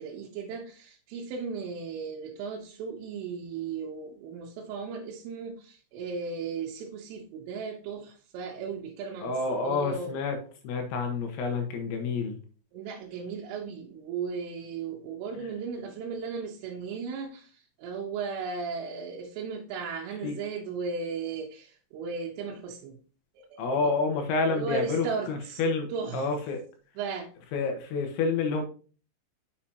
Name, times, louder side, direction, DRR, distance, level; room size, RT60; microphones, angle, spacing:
voice 1, 0.0-10.1 12.7-23.0 23.4-23.9 24.5-25.6 25.9-26.3 27.0-27.3, right 5 dB, 90° right, 3.6 m, -36 dB
voice 2, 9.2-10.4 10.6-12.3 20.2-20.4 23.6-26.6 27.5-28.6, left 4 dB, 75° left, 3.3 m, -29 dB
7.4 x 6.8 x 2.8 m
omnidirectional pair, 5.6 m